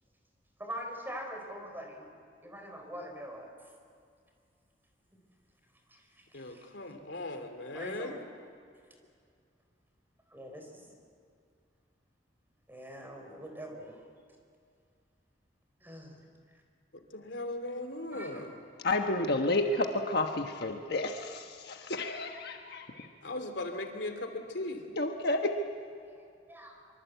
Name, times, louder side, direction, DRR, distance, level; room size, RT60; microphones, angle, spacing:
voice 1, 0.6-2.1 2.4-3.5 5.9-6.7 7.7-8.2 10.3-10.9 12.7-14.0 15.8-16.2 18.1-18.4 26.0-26.8, equal, 10° right, 3 dB, 4.2 m, -44 dB
voice 2, 6.3-8.1 16.9-18.5 23.2-24.8, left 2 dB, 90° left, 6 dB, 3.0 m, -38 dB
voice 3, 18.8-23.1 25.0-25.5, left 2 dB, 60° left, 4 dB, 1.3 m, -31 dB
25.0 x 25.0 x 8.2 m, 2.3 s
head